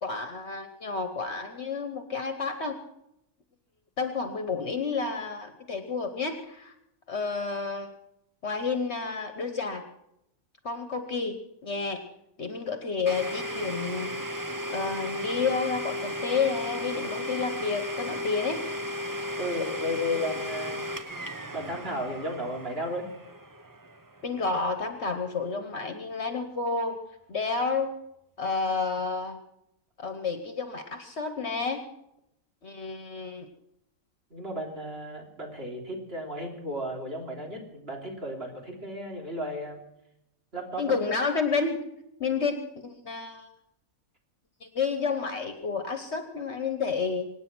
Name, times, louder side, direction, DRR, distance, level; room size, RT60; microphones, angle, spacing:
voice 1, 0.0-2.8 4.0-6.7 7.1-7.9 8.4-9.8 10.6-12.0 12.4-14.1 14.7-18.7 19.7-19.8 24.2-27.0 27.3-27.9 28.4-29.4 30.0-31.8 32.6-33.5 40.8-41.8 42.2-43.5 44.6-47.3, left 4 dB, 55° left, 7 dB, 1.4 m, -30 dB
Domestic sounds home sounds, 13.1-24.7, left 1 dB, 20° right, 0.7 m, -35 dB
voice 2, 19.4-20.8 21.5-23.1 34.3-39.8 40.5-40.9, left 1 dB, 50° right, 0 dB, 3.7 m, -34 dB
24.5 x 9.5 x 6.1 m, 0.82 s
omnidirectional pair, 1.4 m